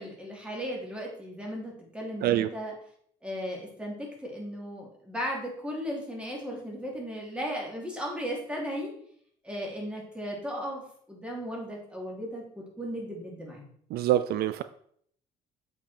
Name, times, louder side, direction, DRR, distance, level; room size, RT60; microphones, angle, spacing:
voice 1, 0.0-2.7 3.2-8.9 9.4-10.8 11.1-13.6, equal, 5° right, -2 dB, 2.9 m, -36 dB
voice 2, 13.9-14.6, right 12 dB, 65° right, 12 dB, 0.4 m, -25 dB
7.5 x 5.4 x 4.4 m, 0.64 s
cardioid pair, 110°, 17 cm